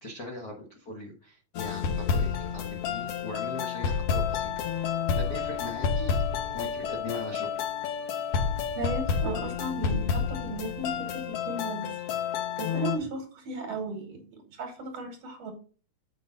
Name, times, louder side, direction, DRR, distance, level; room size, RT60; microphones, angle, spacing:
voice 1, 0.0-6.2 6.5-7.6, left 2 dB, 70° left, 1 dB, 0.8 m, -40 dB
sound 1, 1.5-13.0, left 6 dB, 90° left, 1.3 m, -30 dB
voice 2, 8.8-11.8 12.3-15.5, right 2 dB, 55° right, 5 dB, 2.4 m, -36 dB
7.8 x 5.4 x 3.9 m, 0.38 s
omnidirectional pair, 4.0 m